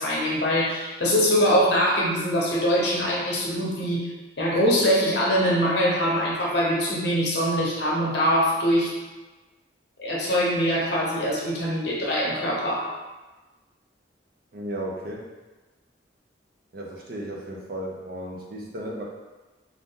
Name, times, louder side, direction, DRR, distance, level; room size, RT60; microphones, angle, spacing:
voice 1, 0.0-4.1 4.4-8.9 10.0-12.8, equal, 60° left, -4 dB, 0.8 m, -23 dB
voice 2, 14.5-15.3 16.7-19.0, right 1 dB, 50° right, -2 dB, 0.5 m, -34 dB
2.5 x 2.5 x 3.5 m, 1.2 s
head